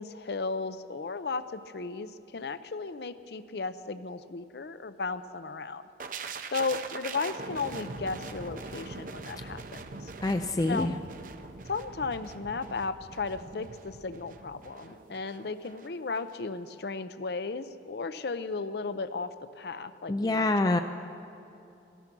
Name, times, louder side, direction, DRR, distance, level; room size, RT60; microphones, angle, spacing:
voice 1, 0.0-5.8 6.5-10.1 10.7-10.9 11.7-20.8, left 4 dB, 65° left, 12 dB, 0.6 m, -35 dB
sound 1, 6.0-15.9 16.2-16.4, right 4 dB, 45° right, 0.7 m, -42 dB
voice 2, 10.2-10.9 20.1-20.8, left 2 dB, 20° left, 7 dB, 0.4 m, -26 dB
17.0 x 13.5 x 6.1 m, 2.8 s
head